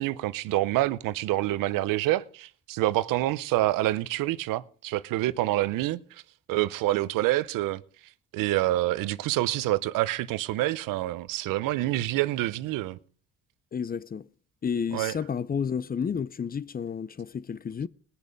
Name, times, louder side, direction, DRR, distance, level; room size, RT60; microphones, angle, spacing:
voice 1, 0.0-6.2 6.5-7.8 8.3-13.0 14.9-15.1, right 16 dB, 85° right, 0.8 m, -27 dB
voice 2, 13.7-14.3 14.6-17.9, left 7 dB, 30° left, 0.6 m, -31 dB
20.5 x 6.9 x 5.1 m
cardioid pair, 85°, 32 cm